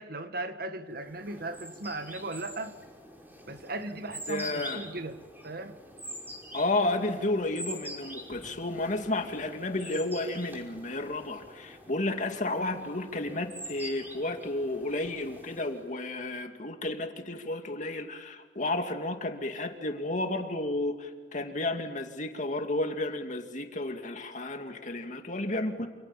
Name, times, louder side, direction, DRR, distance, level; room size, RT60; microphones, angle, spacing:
voice 1, 0.0-2.8 3.5-5.8, right 2 dB, 60° right, 1.7 m, -37 dB
sound 1, 1.0-16.0, equal, 10° right, 5.4 m, -45 dB
voice 2, 4.3-4.8 6.5-25.9, left 2 dB, 45° left, 2.5 m, -32 dB
28.5 x 27.5 x 7.4 m
head